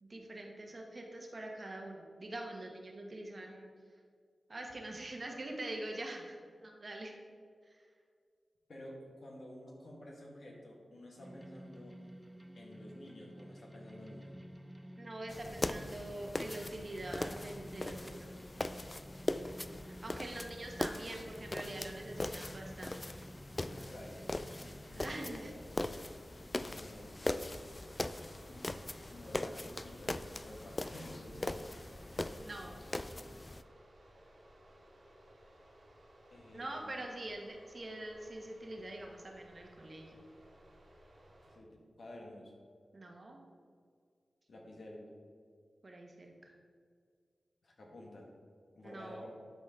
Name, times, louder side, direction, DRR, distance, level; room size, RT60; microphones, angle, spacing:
voice 1, 0.0-3.7 4.5-7.1 7.6-7.8 15.0-18.3 20.0-23.0 24.9-25.5 32.3-32.8 36.5-40.3 42.9-43.4 45.8-46.5 48.8-49.3, right 1 dB, 50° right, 1 dB, 1.3 m, -44 dB
voice 2, 8.7-12.0 12.6-14.4 23.6-25.6 26.4-28.0 28.5-28.6 29.1-32.0 36.3-37.1 41.5-42.5 44.5-45.1 47.6-48.3 48.8-49.4, left 1 dB, 75° left, -1 dB, 1.7 m, -51 dB
sound 1, 11.2-25.3, equal, 10° right, 0.8 m, -52 dB
sound 2, 15.3-33.6, left 2 dB, 30° left, 0.3 m, -41 dB
sound 3, 26.6-41.6, right 1 dB, 70° right, 2.0 m, -60 dB
11.5 x 4.1 x 3.7 m, 2.1 s
cardioid pair, 55°, 0 cm